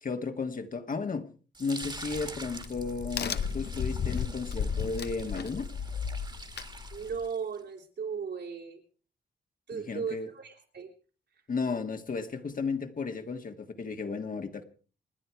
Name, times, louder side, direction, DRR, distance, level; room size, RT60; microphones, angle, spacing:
voice 1, 0.0-1.2 1.6-5.7 9.7-10.3 11.5-14.6, left 4 dB, 50° left, 6 dB, 1.8 m, -34 dB
sound 1, 1.5-7.6, right 3 dB, 25° right, 1.9 m, -46 dB
Crack, 1.8-7.3, left 6 dB, 70° left, 1.0 m, -34 dB
voice 2, 6.9-8.8 9.7-10.9, right 6 dB, 75° right, 2 dB, 4.0 m, -36 dB
28.5 x 10.0 x 4.7 m, 0.40 s
wide cardioid pair, 115°, 18 cm